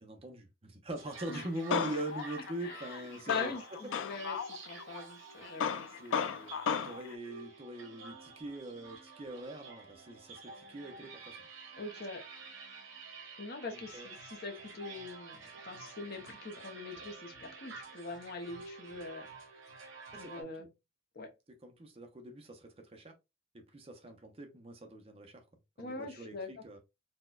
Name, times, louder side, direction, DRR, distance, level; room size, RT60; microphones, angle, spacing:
voice 1, 0.0-3.5 6.0-11.4 13.7-14.1 20.1-20.7 21.6-23.1 23.5-25.4 25.8-26.8, right 1 dB, 30° right, 0.6 m, -43 dB
sound 1, 1.0-20.4, right 4 dB, 75° right, 1.1 m, -50 dB
Male speech man speaking, 1.3-5.0 5.4-7.1, left 7 dB, 70° left, 0.3 m, -35 dB
voice 2, 2.6-3.0 3.3-5.7 11.8-12.2 13.4-19.3 20.2-20.7 21.2-21.3 25.8-26.5, left 4 dB, 50° left, 0.7 m, -42 dB
4.1 x 2.2 x 2.3 m
head